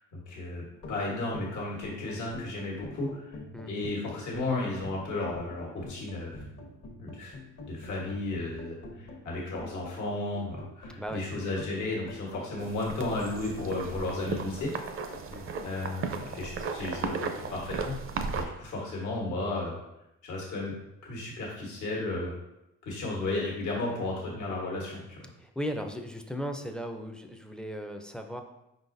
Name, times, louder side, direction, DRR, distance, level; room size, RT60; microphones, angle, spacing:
voice 1, 0.1-3.4 3.7-6.4 7.0-7.3 7.6-14.7 15.6-18.0 18.3-19.8 20.2-20.7 21.0-22.3 22.8-25.2, left 2 dB, 75° left, -3 dB, 1.3 m, -34 dB
sound 1, 0.7-17.6, left 2 dB, 55° left, 1.0 m, -47 dB
sound 2, 12.6-18.4, right 5 dB, 45° right, 0.5 m, -36 dB
voice 2, 25.4-28.4, equal, 5° left, 5 dB, 0.4 m, -36 dB
5.0 x 4.0 x 2.6 m, 0.89 s
cardioid pair, 90°, 30 cm